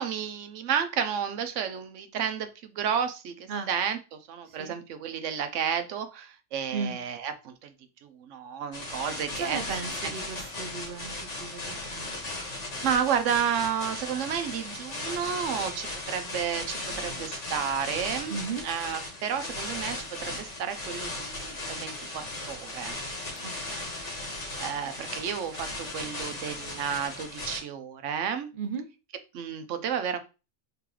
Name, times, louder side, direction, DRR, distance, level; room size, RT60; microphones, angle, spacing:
voice 1, 0.0-4.0 4.3-7.7 8.0-9.6 12.8-18.4 18.6-20.0 20.2-23.0 23.7-23.8 24.6-28.5 29.3-30.2, right 8 dB, 90° right, 9 dB, 1.0 m, -31 dB
voice 2, 4.4-4.8 6.7-7.0 9.3-12.1 18.3-18.6 23.4-23.9 24.4-24.6 28.5-28.9, right 5 dB, 55° right, 6 dB, 0.7 m, -36 dB
sound 1, 8.7-27.6, left 2 dB, 75° left, 1.9 m, -37 dB
3.8 x 3.7 x 2.9 m, 0.29 s
omnidirectional pair, 1.2 m